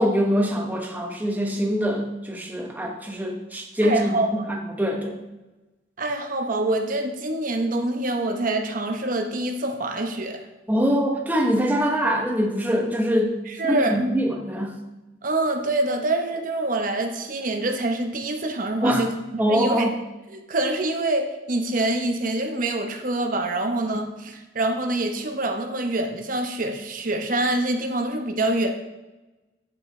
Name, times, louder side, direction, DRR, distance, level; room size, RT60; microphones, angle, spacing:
voice 1, 0.0-5.2 10.7-13.4 13.7-14.8 18.8-19.0 19.4-19.9, equal, 10° right, 1 dB, 0.9 m, -23 dB
voice 2, 3.8-4.5 6.0-10.4 13.5-14.0 15.2-19.1 19.5-19.9 20.3-28.7, right 2 dB, 45° right, 5 dB, 0.8 m, -25 dB
10.5 x 5.6 x 3.2 m, 1.1 s
head